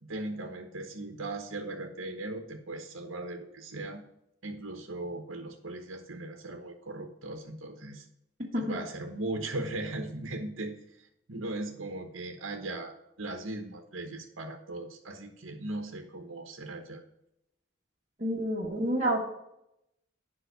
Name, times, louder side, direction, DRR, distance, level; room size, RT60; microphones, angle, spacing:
voice 1, 0.0-4.0 4.4-8.1 8.6-12.9 13.2-17.0, right 2 dB, 85° right, 4 dB, 1.1 m, -38 dB
voice 2, 18.2-19.2, right 1 dB, 40° right, -4 dB, 1.5 m, -29 dB
8.0 x 5.6 x 6.6 m, 0.82 s
head